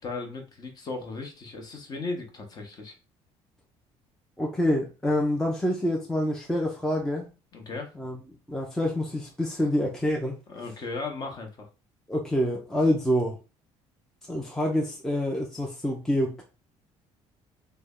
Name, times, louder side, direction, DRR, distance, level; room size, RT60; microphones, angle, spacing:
voice 1, 0.0-2.9 7.5-7.9 10.5-11.7, left 3 dB, 35° left, 0.8 m, -36 dB
voice 2, 4.4-7.3 8.0-8.2 8.5-10.4 12.1-13.4 14.3-16.4, left 1 dB, 5° left, 0.4 m, -26 dB
3.2 x 2.1 x 3.6 m
cardioid pair, 150°, 12 cm